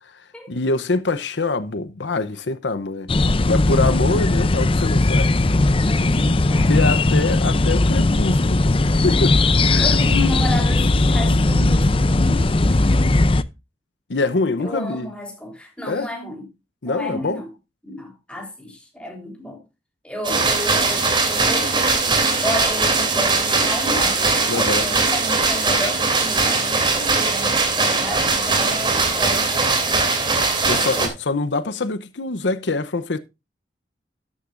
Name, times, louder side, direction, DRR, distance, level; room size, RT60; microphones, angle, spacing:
voice 1, 0.5-3.1 3.5-5.3 6.6-10.0 14.1-15.1 15.9-16.1 16.8-17.4 20.3-20.5 24.5-24.9 30.7-33.2, left 3 dB, 80° left, 0.8 m, -24 dB
sound 1, 3.1-13.4, left 2 dB, 30° left, 0.6 m, -18 dB
voice 2, 5.7-6.8 9.8-12.6 12.9-13.1 14.6-16.5 16.8-17.5 17.8-19.6 20.0-29.8 30.8-31.1, left 1 dB, 5° left, 3.7 m, -32 dB
sound 2, 20.2-31.1, right 3 dB, 25° right, 3.1 m, -20 dB
13.0 x 9.9 x 2.6 m
head